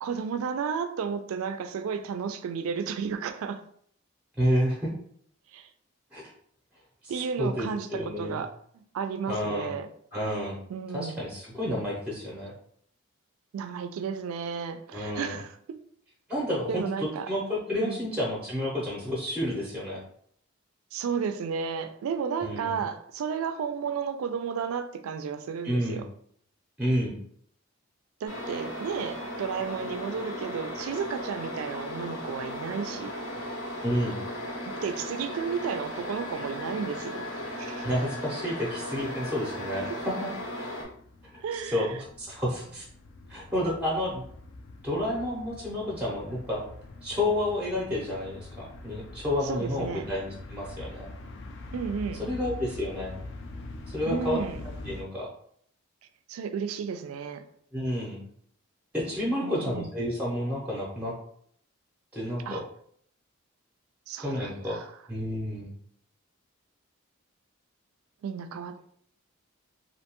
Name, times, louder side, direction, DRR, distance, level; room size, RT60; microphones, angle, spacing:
voice 1, 0.0-3.6 5.5-5.7 7.1-8.5 8.9-9.9 10.7-11.2 13.5-15.8 16.7-17.3 17.8-18.0 20.9-26.0 28.2-33.1 34.7-37.2 37.6-37.9 39.8-40.0 41.4-42.0 49.4-50.1 51.7-52.3 54.1-54.6 56.3-57.4 59.4-59.9 62.5-62.6 64.1-64.9 68.2-68.8, right 6 dB, 75° right, 10 dB, 0.3 m, -33 dB
voice 2, 4.4-4.9 6.1-6.3 7.4-8.4 9.3-9.7 10.1-10.6 10.9-12.5 14.9-15.4 16.3-20.0 22.4-22.8 25.6-26.0 26.8-27.2 33.8-34.2 37.8-40.7 41.3-42.8 43.3-44.2 44.8-46.6 47.0-51.1 52.2-53.1 53.9-54.4 54.9-55.3 57.7-58.2 58.9-61.1 62.1-62.6 64.2-64.8 65.1-65.7, left 1 dB, 5° right, -4 dB, 0.5 m, -30 dB
sound 1, 28.3-40.8, left 1 dB, 75° left, 0.8 m, -36 dB
sound 2, 40.0-55.0, left 2 dB, 55° left, 0.3 m, -44 dB
2.6 x 2.2 x 2.9 m, 0.63 s
head